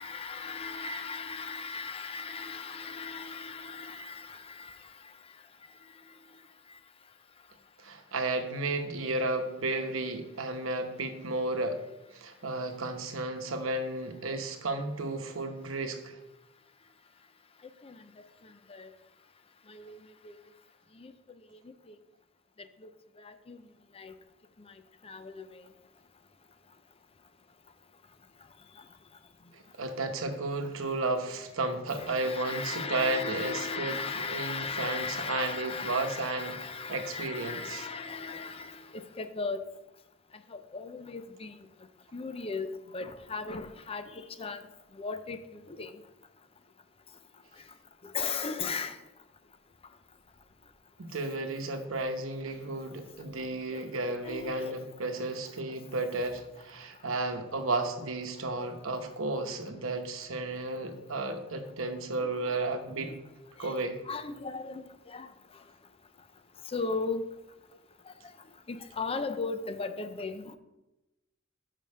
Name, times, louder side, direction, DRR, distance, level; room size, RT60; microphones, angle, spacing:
voice 1, 0.0-5.1 17.8-18.0 18.4-18.9 19.7-20.3 21.0-21.1 21.9-22.0 23.2-23.6 23.9-24.1 25.0-25.7 28.8-28.9 31.9-39.7 40.5-41.6 42.1-44.6 44.9-46.0 48.0-49.0 53.7-53.9 54.2-54.8 58.6-58.7 62.2-62.3 63.0-63.2 63.6-63.8 64.1-65.3 66.7-67.2 68.7-70.6, left 4 dB, 30° left, 10 dB, 0.5 m, -37 dB
voice 2, 7.8-11.8 12.1-16.2 29.5-37.9 51.0-63.1 63.6-64.0, right 2 dB, 70° right, 6 dB, 0.9 m, -33 dB
5.7 x 5.2 x 6.6 m, 0.99 s
head